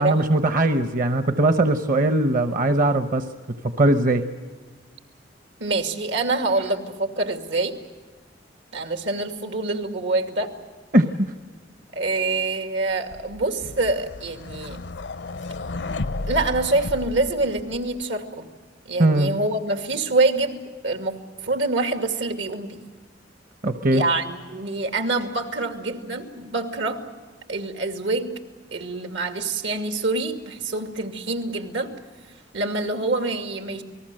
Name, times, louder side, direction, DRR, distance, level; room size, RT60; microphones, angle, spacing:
voice 1, 0.0-3.3 3.6-4.2 10.9-11.1 19.0-19.3 23.6-24.0, right 1 dB, 50° right, 8 dB, 0.9 m, -20 dB
voice 2, 5.6-7.7 8.7-10.5 11.9-14.8 16.3-18.4 18.9-22.8 23.9-27.0 27.5-28.3 28.7-31.9 32.5-33.8, right 3 dB, 85° right, 6 dB, 2.5 m, -25 dB
sound 1, 13.1-18.0, left 2 dB, 70° left, 0.6 m, -33 dB
28.5 x 19.5 x 7.7 m, 1.4 s
head